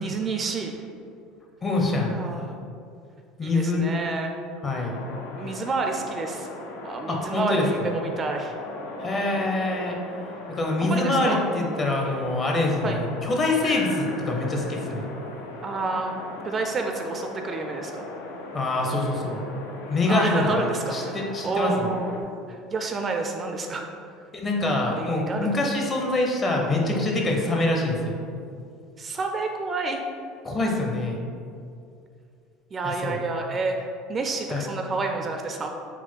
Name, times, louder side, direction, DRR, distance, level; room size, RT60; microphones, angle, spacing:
voice 1, 0.0-0.8 2.1-2.5 3.4-4.4 5.3-6.5 6.8-8.6 10.8-11.4 12.8-13.0 15.6-16.1 16.4-18.0 20.1-22.1 22.5-23.9 24.9-25.7 29.0-30.0 32.7-35.7, right 3 dB, 30° right, 3 dB, 0.3 m, -29 dB
voice 2, 1.6-2.2 3.4-3.9 4.6-5.0 7.1-7.7 9.0-10.0 10.5-15.1 18.5-19.4 19.9-21.9 24.3-28.2 30.4-31.2 33.0-33.2 34.5-34.7, left 2 dB, 30° left, 0 dB, 0.7 m, -25 dB
sound 1, 4.9-22.2, left 2 dB, 85° left, 0.5 m, -39 dB
4.1 x 2.2 x 4.4 m, 2.4 s
supercardioid pair, 105°, 0 cm